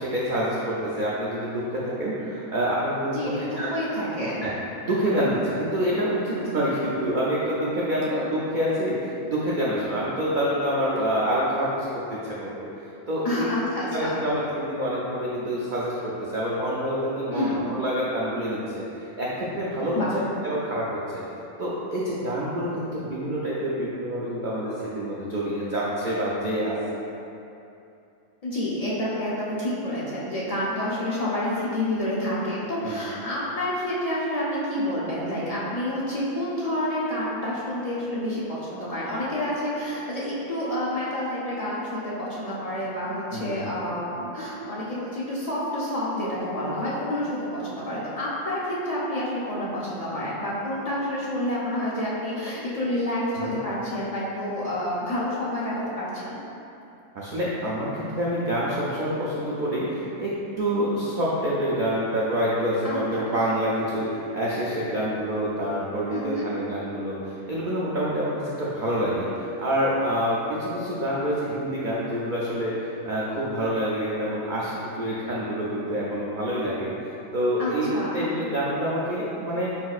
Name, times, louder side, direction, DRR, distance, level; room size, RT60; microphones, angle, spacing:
voice 1, 0.0-3.7 4.4-4.5 4.8-12.6 13.1-13.5 13.8-20.0 20.4-21.0 21.6-26.8 32.8-33.0 43.3-43.7 53.3-53.5 57.1-76.9 77.3-79.7, equal, 90° right, -7 dB, 0.4 m, -27 dB
voice 2, 3.1-4.4 13.2-14.2 17.3-17.6 19.9-20.1 28.4-56.4 62.8-63.3 66.1-66.5 77.6-78.3, left 1 dB, 55° left, -8 dB, 0.4 m, -29 dB
4.4 x 4.1 x 2.3 m, 2.7 s
omnidirectional pair, 1.5 m